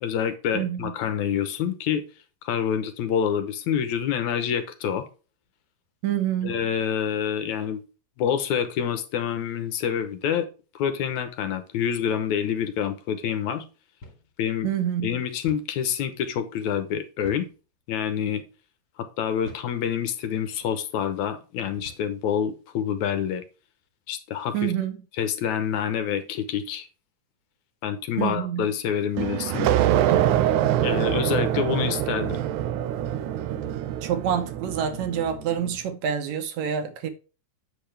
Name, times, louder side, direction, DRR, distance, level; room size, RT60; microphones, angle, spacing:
voice 1, 0.0-2.0 2.4-5.1 6.4-7.8 8.2-10.5 10.8-13.6 14.4-14.7 15.0-17.5 17.9-18.4 19.2-23.4 24.1-24.7 25.2-26.9 27.8-29.7 30.8-32.4, left 8 dB, 75° left, 2.3 m, -27 dB
voice 2, 0.5-0.9 6.0-6.6 14.6-15.1 24.5-25.0 28.2-28.7 34.0-37.1, right 9 dB, 70° right, 2.1 m, -27 dB
sound 1, 14.0-14.3 14.6-14.7 15.5-15.8 17.2-17.6 18.3-18.5 19.4-19.8 20.5-20.7 21.8-22.2, left 1 dB, 45° left, 2.7 m, -45 dB
sound 2, 29.2-35.5, right 12 dB, 90° right, 2.1 m, -24 dB
sound 3, 30.2-35.7, right 1 dB, 35° right, 1.2 m, -46 dB
8.4 x 7.0 x 3.3 m
omnidirectional pair, 3.4 m